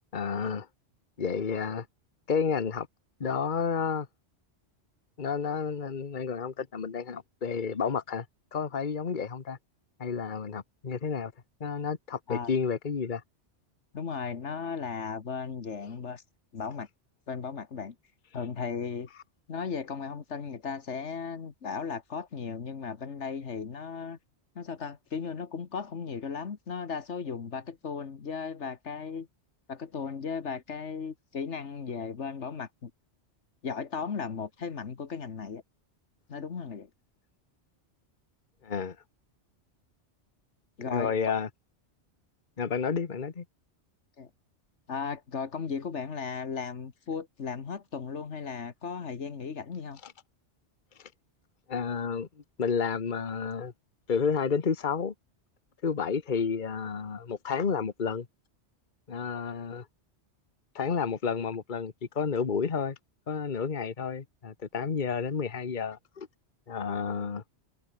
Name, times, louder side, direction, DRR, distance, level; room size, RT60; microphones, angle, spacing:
voice 1, 0.1-0.7 1.2-1.9 2.3-2.9 3.2-4.1 5.2-8.2 8.5-9.6 10.0-11.3 11.6-13.2 38.6-39.0 40.9-41.5 42.6-43.4 50.0-50.1 51.0-51.1 51.7-52.3 52.6-53.7 54.1-55.1 55.8-58.3 59.1-59.9 60.7-63.0 63.3-66.3 66.7-67.4, left 6 dB, 45° left, 1.4 m, -30 dB
voice 2, 13.9-16.2 16.5-16.9 17.3-18.0 18.3-19.1 19.5-24.2 24.6-29.3 29.7-32.9 33.6-35.6 36.3-36.9 40.8-41.1 44.2-44.3 44.9-50.0, left 5 dB, 80° left, 1.8 m, -36 dB
omnidirectional pair, 1.2 m